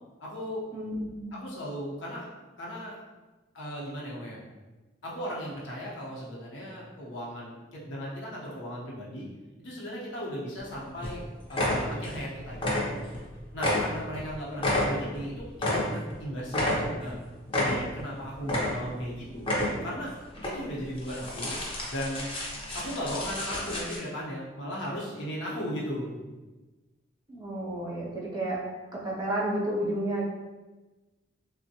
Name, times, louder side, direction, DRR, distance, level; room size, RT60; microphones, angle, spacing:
voice 1, 0.2-0.6 1.3-2.3 2.6-3.0 3.5-4.4 5.0-9.3 9.6-13.0 13.5-17.2 17.5-19.5 19.8-20.1 20.4-21.6 21.9-22.3 22.7-26.3, equal, 75° left, -4 dB, 0.8 m, -36 dB
voice 2, 0.7-1.4 27.3-28.6 28.9-30.2, right 1 dB, 20° right, -5 dB, 0.7 m, -31 dB
sound 1, 10.6-10.7 11.0-11.2 11.5-12.2 12.5-13.3 13.5-16.2 16.5-17.2 17.5-18.1 18.4-19.0 19.4-20.0 20.3-20.5 21.0-24.0, left 1 dB, 30° left, 0.6 m, -30 dB
3.4 x 2.1 x 2.7 m, 1.2 s
head